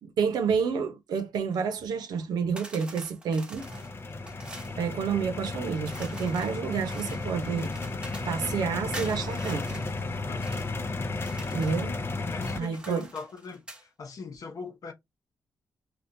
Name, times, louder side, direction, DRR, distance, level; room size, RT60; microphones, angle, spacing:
voice 1, 0.0-3.8 4.8-7.7 8.2-9.8 11.5-12.0 12.5-13.1, right 6 dB, 85° right, 0.8 m, -29 dB
sound 1, 2.6-4.8 5.8-8.4 8.9-10.7 11.1-11.8 12.3-13.9, right 2 dB, 15° right, 0.9 m, -45 dB
sound 2, 3.6-12.6, left 3 dB, 35° left, 0.6 m, -33 dB
voice 2, 10.3-10.7 12.3-14.9, left 4 dB, 60° left, 0.9 m, -41 dB
3.5 x 2.4 x 2.6 m
cardioid pair, 85°, 7 cm